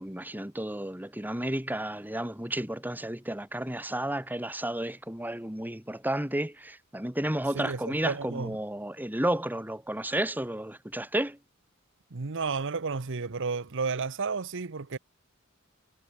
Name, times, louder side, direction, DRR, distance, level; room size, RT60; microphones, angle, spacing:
voice 1, 0.0-11.4, right 1 dB, 10° right, 2.4 m, -32 dB
voice 2, 7.5-8.6 12.1-15.0, right 4 dB, 60° right, 0.9 m, -32 dB
head